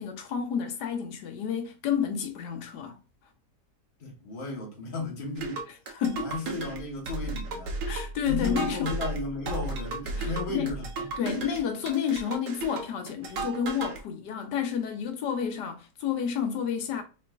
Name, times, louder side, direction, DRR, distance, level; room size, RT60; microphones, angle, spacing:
voice 1, 0.0-3.0 5.9-6.3 7.9-8.9 10.2-10.7 11.2-17.0, left 7 dB, 80° left, 1.3 m, -30 dB
voice 2, 4.0-5.6 6.1-7.7 8.3-11.1, left 3 dB, 35° left, 1.1 m, -35 dB
sound 1, 5.4-14.0, right 3 dB, 70° right, 1.3 m, -34 dB
4.6 x 3.1 x 2.4 m
omnidirectional pair, 1.8 m